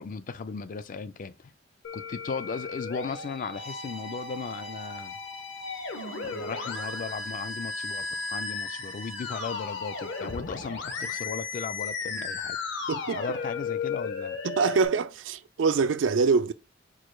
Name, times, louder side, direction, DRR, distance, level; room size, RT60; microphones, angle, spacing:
voice 1, 0.0-1.5 1.9-5.2 6.3-12.6 13.2-14.4, left 5 dB, 45° left, 0.4 m, -36 dB
Musical instrument, 1.8-14.9, left 4 dB, 65° left, 0.8 m, -35 dB
Bowed string instrument, 3.5-10.5, left 2 dB, 90° left, 2.0 m, -46 dB
voice 2, 12.9-13.2 14.4-16.5, right 4 dB, 70° right, 0.4 m, -24 dB
4.7 x 2.3 x 4.4 m
head